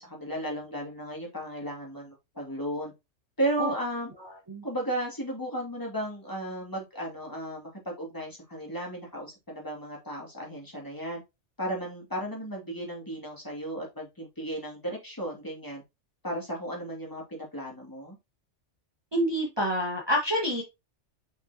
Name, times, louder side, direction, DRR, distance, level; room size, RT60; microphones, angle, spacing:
voice 1, 0.0-2.9 3.4-4.1 4.6-11.2 11.6-15.8 16.2-18.2, right 1 dB, 15° left, -2 dB, 2.4 m, -34 dB
voice 2, 19.1-20.6, equal, 20° right, -2 dB, 1.6 m, -27 dB
6.0 x 5.9 x 2.8 m, 0.23 s
omnidirectional pair, 1.2 m